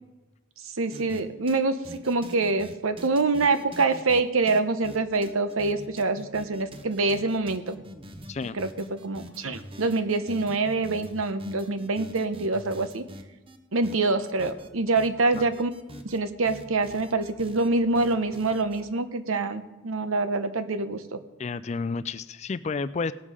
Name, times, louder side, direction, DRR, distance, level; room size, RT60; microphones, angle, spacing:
voice 1, 0.8-7.8 8.5-8.7 9.0-13.0 13.7-15.7 16.0-21.2, right 3 dB, 90° right, 10 dB, 0.9 m, -25 dB
sound 1, 0.9-1.2 1.5-1.6 1.8-4.2 4.5-13.6 13.8-14.7 15.0-16.2 16.5-17.7 18.0-18.8, equal, 25° right, 0.8 m, -44 dB
voice 2, 21.4-23.1, left 4 dB, 35° left, 14 dB, 0.3 m, -31 dB
18.0 x 7.3 x 4.9 m, 1.1 s
head